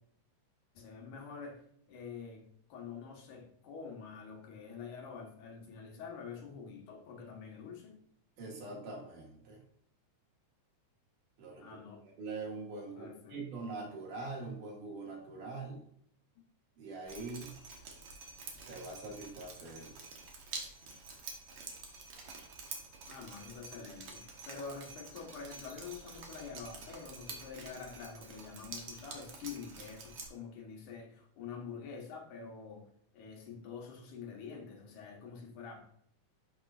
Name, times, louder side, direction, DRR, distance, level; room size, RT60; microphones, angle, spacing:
voice 1, 0.7-8.0 11.6-12.0 12.9-13.5 23.1-35.9, left 5 dB, 80° left, 1 dB, 2.9 m, -47 dB
voice 2, 8.4-9.6 11.4-11.8 12.0-15.9 16.8-17.6 18.7-19.9, right 3 dB, 85° right, -1 dB, 3.6 m, -43 dB
Drip, 17.1-30.3, right 4 dB, 55° right, 2.0 m, -48 dB
12.0 x 5.4 x 2.5 m, 0.69 s
omnidirectional pair, 3.6 m